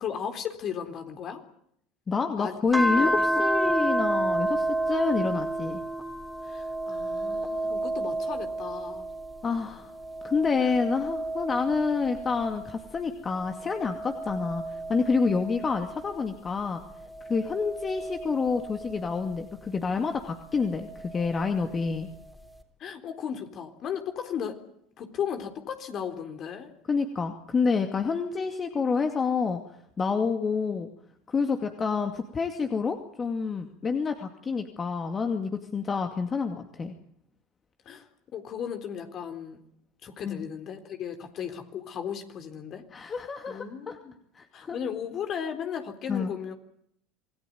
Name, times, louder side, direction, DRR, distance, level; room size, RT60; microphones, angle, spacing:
voice 1, 0.0-1.4 2.4-2.6 3.0-3.2 3.6-3.8 6.4-9.1 10.6-10.7 22.8-24.6 25.0-26.7 37.9-39.6 40.0-44.2 44.5-46.5, left 8 dB, 45° left, 7 dB, 3.8 m, -36 dB
voice 2, 2.1-5.8 9.4-9.9 10.2-16.8 17.3-22.1 26.9-29.6 30.0-30.9 31.3-36.9 40.2-40.4 42.9-44.0 44.3-44.8 46.1-46.3, left 5 dB, 30° left, 6 dB, 2.4 m, -28 dB
sound 1, 2.7-9.4 9.9-12.8 13.4-16.2 16.9-19.4 20.7-21.8, right 1 dB, 5° left, 3.9 m, -31 dB
27.0 x 19.0 x 9.4 m, 0.72 s
hypercardioid pair, 75°, 0 cm